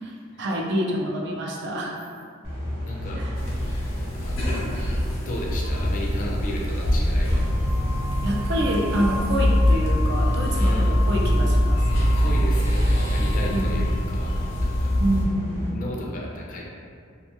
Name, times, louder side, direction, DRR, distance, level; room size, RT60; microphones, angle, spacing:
voice 1, 0.0-1.9 3.1-3.3 8.2-11.8 13.5-13.8 15.0-15.8, equal, 60° right, -2 dB, 0.4 m, -27 dB
sound 1, 2.4-15.7, equal, 30° right, 1.0 m, -31 dB
voice 2, 2.8-3.2 4.1-4.6 5.2-7.7 10.5-11.0 11.9-14.3 14.6-14.9 15.7-16.6, left 1 dB, 45° left, -3 dB, 0.4 m, -34 dB
sound 2, 3.4-15.3, equal, 85° left, 0.7 m, -23 dB
2.6 x 2.3 x 2.8 m, 2.3 s
head